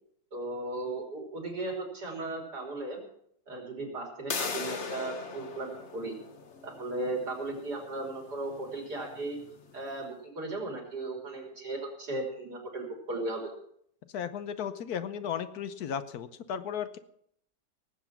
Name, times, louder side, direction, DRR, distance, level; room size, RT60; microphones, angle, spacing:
voice 1, 0.3-3.0 3.5-6.2 6.6-9.4 9.7-13.5, right 2 dB, 80° right, 1 dB, 4.1 m, -36 dB
sound 1, 4.3-9.9, left 5 dB, 45° left, 1.4 m, -40 dB
voice 2, 14.1-17.0, left 8 dB, 70° left, 12 dB, 1.3 m, -35 dB
18.5 x 8.1 x 5.9 m, 0.69 s
omnidirectional pair, 1.7 m